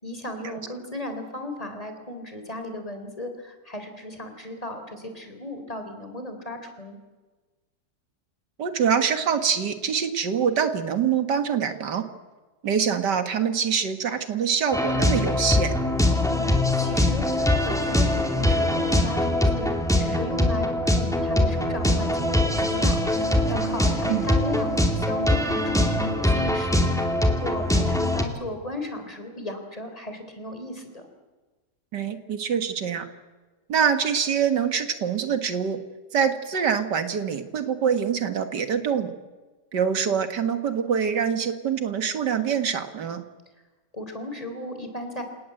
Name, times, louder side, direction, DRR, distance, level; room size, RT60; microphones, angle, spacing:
voice 1, 0.0-7.0 16.3-31.0 43.9-45.2, left 1 dB, 20° left, 6 dB, 3.9 m, -36 dB
voice 2, 8.6-12.0 12.6-15.7 24.1-24.3 31.9-33.1 33.7-35.8 36.1-39.1 39.7-43.2, right 7 dB, 90° right, 8 dB, 2.3 m, -25 dB
sound 1, 14.7-28.2, left 1 dB, ahead, 2.5 m, -22 dB
28.0 x 18.5 x 7.9 m, 1.3 s
omnidirectional pair, 1.8 m